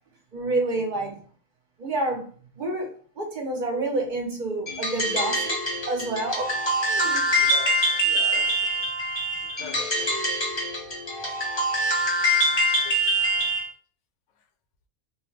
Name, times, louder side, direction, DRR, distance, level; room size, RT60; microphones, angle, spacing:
voice 1, 0.3-1.3 1.8-2.3 2.5-5.6 5.9-6.6 6.8-7.3, right 2 dB, 45° right, 0.9 m, -28 dB
sound 1, 4.7-13.7, equal, 25° left, 0.7 m, -24 dB
voice 2, 7.3-8.7 9.4-10.1 12.8-13.0, left 7 dB, 75° left, 0.9 m, -42 dB
3.1 x 2.2 x 3.1 m
omnidirectional pair, 1.3 m